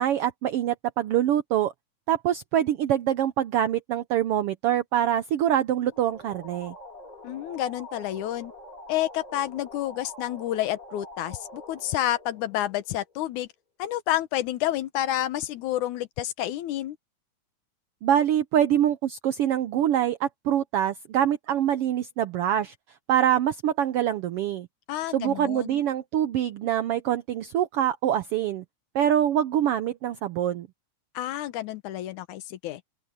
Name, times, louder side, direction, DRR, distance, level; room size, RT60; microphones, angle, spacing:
voice 1, 0.0-1.7 2.1-6.7 18.0-22.7 23.1-24.7 25.1-28.6 28.9-30.7, right 11 dB, 80° right, 1.3 m, -25 dB
sound 1, 5.9-13.3, left 1 dB, 15° left, 2.0 m, -45 dB
voice 2, 7.2-8.5 8.9-13.5 13.8-17.0 24.9-25.8 31.1-32.8, left 13 dB, 80° left, 2.4 m, -29 dB
open air
omnidirectional pair, 3.4 m